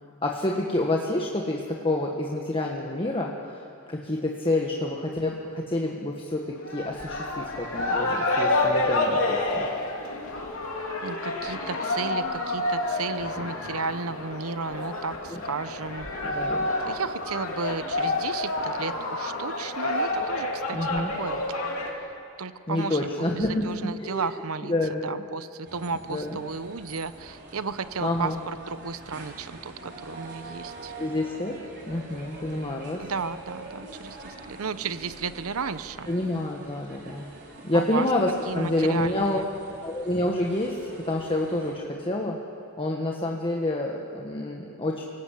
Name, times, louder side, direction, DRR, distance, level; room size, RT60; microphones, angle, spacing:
voice 1, 0.2-9.7 15.3-15.4 16.2-16.7 20.7-21.1 22.7-24.3 24.7-25.1 26.1-26.4 28.0-28.4 30.9-33.1 36.1-37.3 37.6-39.4 39.7-42.4 42.8-45.1, left 1 dB, 25° left, 0 dB, 1.5 m, -28 dB
sound 1, 6.6-21.9, left 2 dB, 70° left, 3.4 m, -29 dB
voice 2, 11.0-16.1 16.9-21.4 22.4-24.7 25.0-30.9 33.0-36.1 37.7-38.1 38.5-39.5, right 4 dB, 85° right, 14 dB, 0.8 m, -33 dB
sound 2, 25.6-41.7, right 2 dB, 55° right, 4.0 m, -45 dB
27.0 x 17.5 x 8.4 m, 2.5 s
head